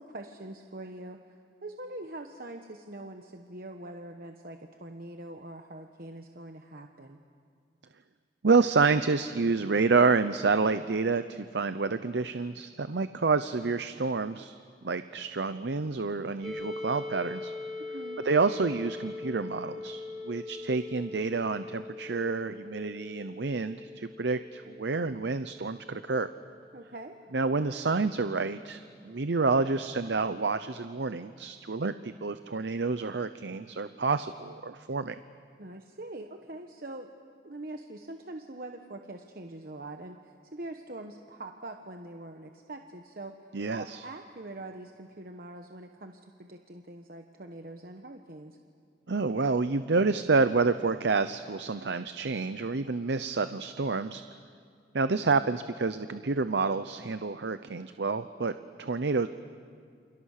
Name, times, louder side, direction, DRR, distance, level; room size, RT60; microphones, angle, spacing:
voice 1, 0.0-7.2 17.8-18.2 26.7-27.2 35.6-37.1 37.4-43.4 43.7-48.6, right 2 dB, 50° right, 4 dB, 1.1 m, -43 dB
voice 2, 8.4-14.5 14.8-17.5 18.2-26.3 27.3-35.1 43.5-44.0 49.1-54.2 54.9-58.5 58.8-59.3, right 4 dB, 75° right, 11 dB, 0.7 m, -28 dB
sound 1, 16.4-28.1, left 3 dB, ahead, 4.9 m, -42 dB
29.0 x 27.5 x 6.6 m, 2.3 s
head